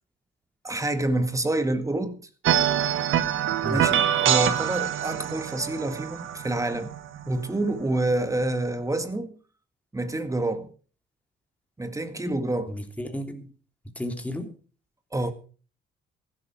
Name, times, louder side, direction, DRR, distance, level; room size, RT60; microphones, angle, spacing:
voice 1, 0.6-2.3 3.7-6.9 7.3-9.4 9.9-10.7 11.8-12.8 15.1-15.3, right 2 dB, 15° right, 1.9 m, -27 dB
sound 1, 2.4-7.9, right 10 dB, 80° right, 1.5 m, -25 dB
voice 2, 12.7-13.5 13.9-14.5, equal, 5° left, 3.1 m, -33 dB
15.5 x 12.0 x 4.7 m
cardioid pair, 90°, 20 cm